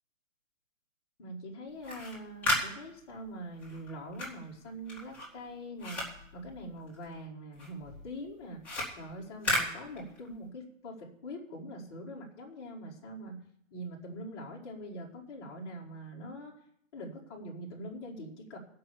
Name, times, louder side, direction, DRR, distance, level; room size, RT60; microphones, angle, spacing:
voice 1, 1.2-6.0 6.3-8.6 8.9-13.4 13.7-16.5 16.9-18.6, equal, 20° left, -3 dB, 1.6 m, -43 dB
sound 1, 1.7-7.2 7.5-10.5, left 1 dB, 5° left, 1.9 m, -36 dB
14.5 x 5.6 x 7.0 m, 0.72 s
hypercardioid pair, 170°, 40 cm